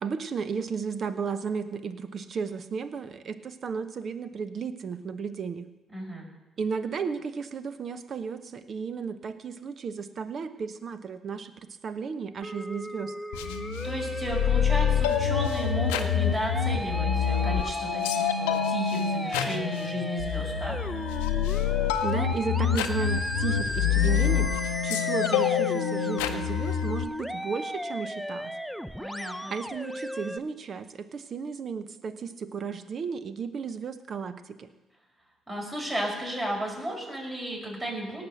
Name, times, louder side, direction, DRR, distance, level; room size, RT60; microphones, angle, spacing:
voice 1, 0.0-5.7 6.6-11.5 11.8-13.1 22.0-24.5 24.8-28.5 29.5-34.7, right 6 dB, 55° right, 12 dB, 0.9 m, -34 dB
voice 2, 5.9-6.2 13.8-20.8 29.0-29.5 35.5-38.2, right 1 dB, 30° right, -2 dB, 5.4 m, -34 dB
Musical instrument, 12.4-30.4, equal, ahead, 0.6 m, -35 dB
sound 1, 13.3-27.0, left 9 dB, 85° left, 0.6 m, -27 dB
17.5 x 6.1 x 6.5 m, 1.1 s
hypercardioid pair, 50°, 0 cm